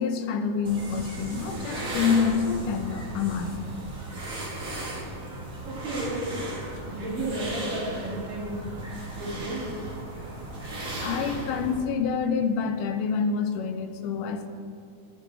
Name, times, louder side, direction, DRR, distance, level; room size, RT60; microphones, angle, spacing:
voice 1, 0.0-3.6 11.0-14.5, left 6 dB, 80° left, 8 dB, 2.3 m, -27 dB
sound 1, 0.6-11.8, right 2 dB, 30° right, 2.1 m, -36 dB
voice 2, 5.7-6.3 6.9-8.6 9.0-9.7, right 2 dB, 80° right, -5 dB, 4.5 m, -33 dB
15.0 x 12.0 x 4.7 m, 2.4 s
omnidirectional pair, 3.8 m